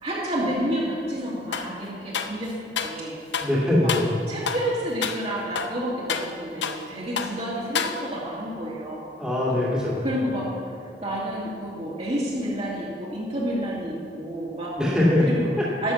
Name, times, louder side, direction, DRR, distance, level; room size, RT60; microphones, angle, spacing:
voice 1, 0.0-2.6 2.8-3.2 3.8-3.9 4.3-9.1 10.0-14.9 15.2-15.9, equal, 35° right, -6 dB, 2.6 m, -30 dB
sound 1, 1.5-1.7 2.1-3.0 3.3-3.6 3.9-4.2 4.5-4.7 5.0-5.2 5.5-6.9 7.2-7.4 7.7-8.3, left 6 dB, 80° left, 0.7 m, -29 dB
voice 2, 3.4-4.1 9.2-10.0 14.8-15.3 15.6-15.7, left 1 dB, 5° right, -7 dB, 2.4 m, -22 dB
12.0 x 6.9 x 7.3 m, 2.3 s
head